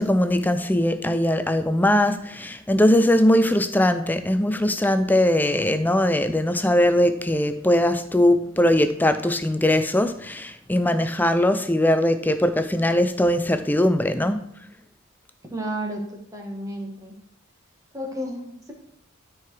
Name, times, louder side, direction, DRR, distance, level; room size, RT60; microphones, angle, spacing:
voice 1, 0.0-14.4, left 1 dB, 10° left, 10 dB, 0.4 m, -20 dB
voice 2, 15.5-17.1 17.9-18.7, right 1 dB, 15° right, 0 dB, 1.8 m, -32 dB
13.0 x 4.7 x 4.8 m, 0.77 s
head